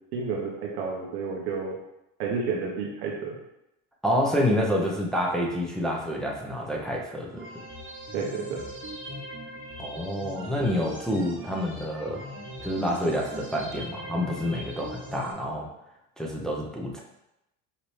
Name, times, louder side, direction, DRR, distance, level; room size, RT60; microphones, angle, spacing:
voice 1, 0.1-1.8 2.2-3.3 8.1-8.6, right 5 dB, 90° right, -1 dB, 0.9 m, -30 dB
voice 2, 4.0-7.4 9.8-12.2 12.6-15.7 16.2-17.0, equal, ahead, -2 dB, 0.7 m, -28 dB
sound 1, 7.3-15.3, equal, 25° right, 1.1 m, -40 dB
5.1 x 2.8 x 3.1 m, 0.88 s
supercardioid pair, 90°, 46 cm